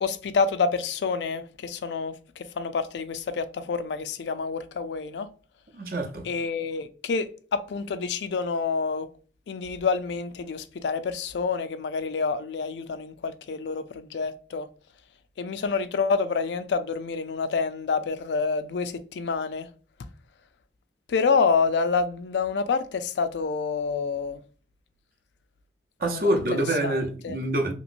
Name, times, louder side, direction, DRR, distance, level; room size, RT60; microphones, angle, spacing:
voice 1, 0.0-5.3 6.2-9.1 9.5-14.7 15.4-19.7 21.1-24.4 26.1-27.4, left 5 dB, 80° left, 0.4 m, -28 dB
voice 2, 5.7-6.3 26.0-27.7, right 1 dB, 55° right, 0.6 m, -26 dB
3.0 x 2.9 x 2.4 m
head